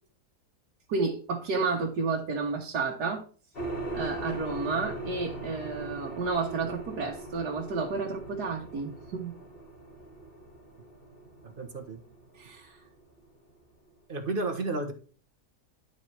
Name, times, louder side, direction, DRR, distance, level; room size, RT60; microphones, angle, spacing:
voice 1, 0.9-3.2 3.9-9.3 12.4-12.8, right 4 dB, 75° right, 0 dB, 1.6 m, -31 dB
sound 1, 3.5-13.7, right 2 dB, 35° left, 1.7 m, -40 dB
voice 2, 11.4-12.0 14.1-14.9, right 2 dB, 40° right, 7 dB, 1.0 m, -32 dB
11.0 x 4.2 x 4.5 m, 0.40 s
omnidirectional pair, 1.8 m